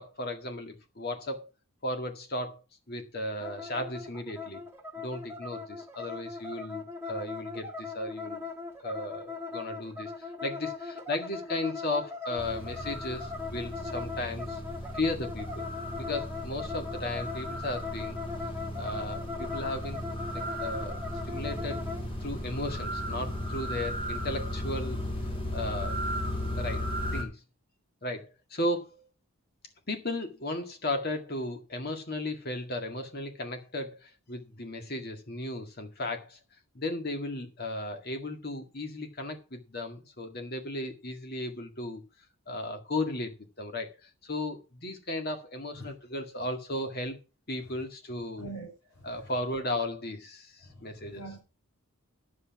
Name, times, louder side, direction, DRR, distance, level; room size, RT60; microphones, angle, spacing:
voice 1, 0.0-1.5 1.8-4.6 5.0-8.4 8.8-10.1 10.4-14.6 14.9-15.6 15.9-18.2 18.7-20.0 20.3-21.8 22.2-25.0 25.5-26.0 26.6-27.4 28.0-29.0 29.9-36.4 36.8-42.0 42.5-47.2 47.5-48.5 49.0-51.2, left 1 dB, 45° left, 1.9 m, -35 dB
sound 1, 3.4-22.0, left 4 dB, 10° right, 1.6 m, -40 dB
sound 2, 12.4-27.2, equal, 25° left, 2.8 m, -36 dB
voice 2, 48.4-49.3 50.7-51.4, right 2 dB, 65° left, 5.3 m, -44 dB
9.7 x 7.7 x 5.9 m
head